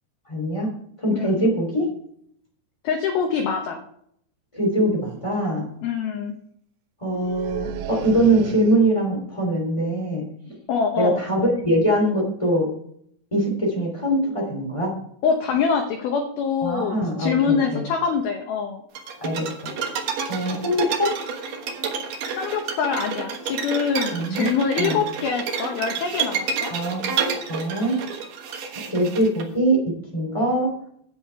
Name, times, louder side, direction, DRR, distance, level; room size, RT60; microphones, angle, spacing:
voice 1, 0.3-0.7 1.0-1.9 4.5-5.6 7.0-10.5 10.9-12.7 13.3-14.9 16.6-17.8 19.2-19.4 19.8-19.9 20.3-21.1 24.1-24.5 24.8-25.0 26.7-27.1 27.5-27.9 28.8-29.8 30.1-30.7, right 1 dB, 10° left, -2 dB, 1.7 m, -22 dB
voice 2, 2.8-3.8 5.8-6.4 10.7-11.2 15.2-18.8 22.4-26.7, left 6 dB, 85° left, 3 dB, 2.1 m, -24 dB
sound 1, 4.6-4.7 5.0-5.4 7.1-9.1, right 9 dB, 90° right, 2.4 m, -35 dB
sound 2, 19.0-29.4, right 6 dB, 70° right, 2.0 m, -29 dB
10.5 x 8.4 x 4.6 m, 0.69 s
omnidirectional pair, 5.8 m